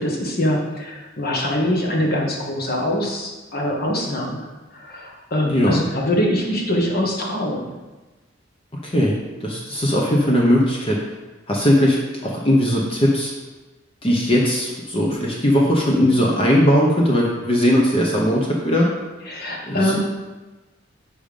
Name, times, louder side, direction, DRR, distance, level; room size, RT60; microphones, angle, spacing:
voice 1, 0.0-4.5 4.7-7.7 19.3-20.0, left 1 dB, 50° left, -1 dB, 1.6 m, -23 dB
voice 2, 5.5-5.8 8.8-11.1 11.5-12.0 12.2-13.3 14.0-18.9 19.7-20.0, equal, 30° left, -2 dB, 0.9 m, -19 dB
7.1 x 5.1 x 5.2 m, 1.2 s
head